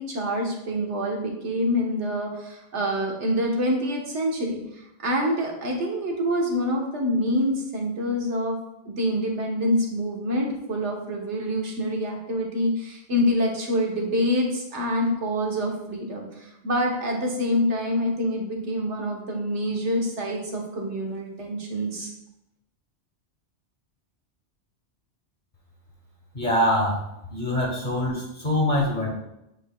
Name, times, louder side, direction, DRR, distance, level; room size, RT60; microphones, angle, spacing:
voice 1, 0.0-8.6 8.8-22.1, equal, 90° right, 0 dB, 1.5 m, -26 dB
voice 2, 26.3-27.0 27.3-29.1, left 1 dB, 45° left, -3 dB, 1.3 m, -24 dB
8.4 x 5.1 x 2.2 m, 0.85 s
omnidirectional pair, 1.2 m